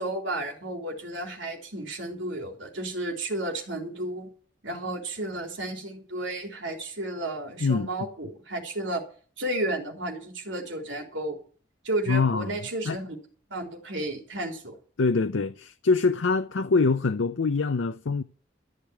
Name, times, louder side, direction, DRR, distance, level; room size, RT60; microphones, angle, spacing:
voice 1, 0.0-4.3 4.6-9.0 9.4-11.4 11.8-13.2 13.5-14.8, right 1 dB, 85° right, 3.5 m, -32 dB
voice 2, 12.1-12.5 12.8-13.0 15.0-18.2, left 4 dB, 90° left, 0.6 m, -24 dB
13.5 x 6.6 x 9.4 m
head